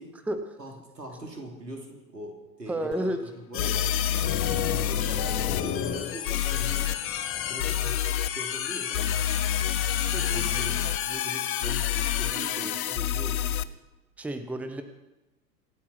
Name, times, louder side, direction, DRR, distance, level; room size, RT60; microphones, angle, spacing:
voice 1, 0.6-3.9 4.7-7.0 7.5-9.2 10.0-13.6, right 1 dB, 80° right, 2 dB, 3.4 m, -41 dB
voice 2, 2.7-3.2 14.2-14.8, right 1 dB, 5° right, 9 dB, 0.8 m, -30 dB
sound 1, 2.9-3.0 3.6-5.6 6.3-7.0 7.6-8.3 8.9-13.6, left 10 dB, 60° left, 0.7 m, -28 dB
sound 2, 3.5-12.9, left 9 dB, 25° left, 1.3 m, -32 dB
25.5 x 8.7 x 5.9 m, 1.0 s
figure-of-eight pair, 90°, 48 cm